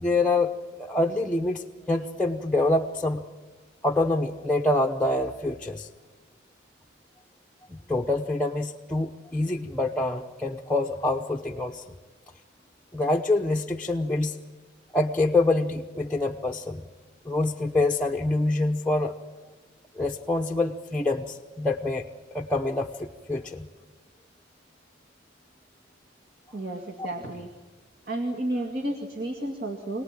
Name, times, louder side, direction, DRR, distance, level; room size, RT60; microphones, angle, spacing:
voice 1, 0.0-0.5 0.8-3.2 3.8-5.9 7.7-11.8 12.9-14.4 14.9-16.8 17.2-19.1 20.0-22.0 22.3-23.7, left 2 dB, 5° left, 1 dB, 0.9 m, -26 dB
voice 2, 26.5-27.5 28.1-30.0, right 1 dB, 50° right, 2 dB, 2.1 m, -31 dB
27.0 x 19.0 x 9.0 m, 1.3 s
head